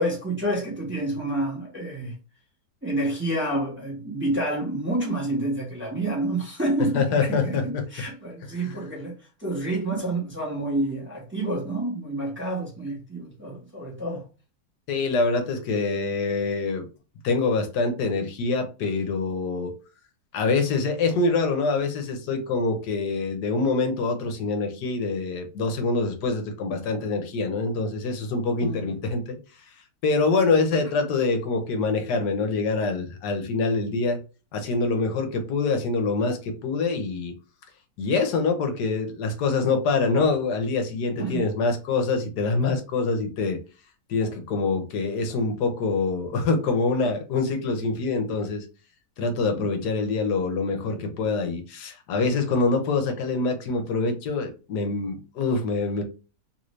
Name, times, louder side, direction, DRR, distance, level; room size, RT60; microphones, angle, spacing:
voice 1, 0.0-2.1 2.8-9.1 9.4-14.2 28.6-28.9 41.2-41.5 49.5-49.7, right 1 dB, 10° right, 1.0 m, -28 dB
voice 2, 6.9-7.8 14.9-16.9 17.2-19.8 20.3-29.4 30.0-34.2 34.5-37.3 38.0-43.6 44.1-48.6 49.2-56.0, left 3 dB, 80° left, 1.3 m, -25 dB
3.1 x 2.6 x 3.1 m
omnidirectional pair, 1.8 m